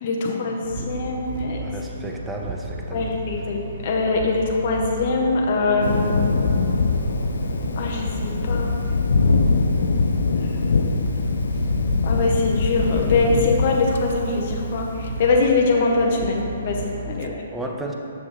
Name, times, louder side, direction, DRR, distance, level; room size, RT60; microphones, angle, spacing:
voice 1, 0.0-1.6 2.9-6.3 7.8-8.7 10.4-10.6 12.0-17.3, left 3 dB, 45° left, -1 dB, 0.7 m, -23 dB
sound 1, 0.6-17.3, right 2 dB, 50° right, 0.4 m, -34 dB
voice 2, 1.6-3.1 17.2-17.9, right 1 dB, 10° right, 1 dB, 0.6 m, -33 dB
Thunder, 5.8-15.5, left 3 dB, 75° left, 0.4 m, -23 dB
7.0 x 6.4 x 3.0 m, 2.7 s
hypercardioid pair, 140°, 0 cm